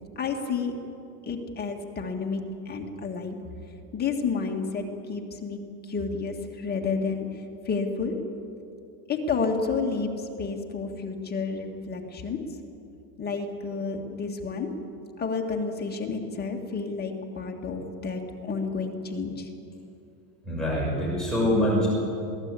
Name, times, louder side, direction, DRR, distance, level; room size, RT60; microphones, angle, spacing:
voice 1, 0.2-0.7 1.3-3.4 3.9-8.2 9.1-12.4 13.2-14.7 15.2-19.5, left 4 dB, 20° left, 2 dB, 1.9 m, -30 dB
voice 2, 20.4-21.9, equal, ahead, -6 dB, 6.2 m, -24 dB
22.5 x 17.0 x 8.5 m, 2.7 s
supercardioid pair, 140°, 48 cm